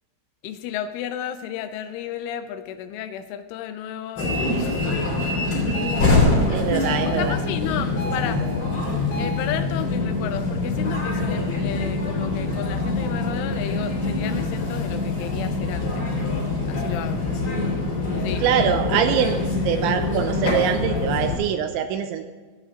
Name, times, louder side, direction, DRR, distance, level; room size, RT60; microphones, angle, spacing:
voice 1, 0.4-5.0 7.0-8.4 9.2-16.1 16.7-17.3 18.2-18.5, left 10 dB, 85° left, 9 dB, 3.1 m, -33 dB
sound 1, 4.2-21.4, left 3 dB, 35° left, 4.1 m, -24 dB
sound 2, 5.7-9.6, right 1 dB, 65° left, 2.9 m, -38 dB
voice 2, 6.5-7.4 18.4-19.4 19.6-22.3, right 8 dB, 85° right, 8 dB, 2.8 m, -23 dB
16.5 x 13.0 x 3.8 m, 1.4 s
omnidirectional pair, 5.7 m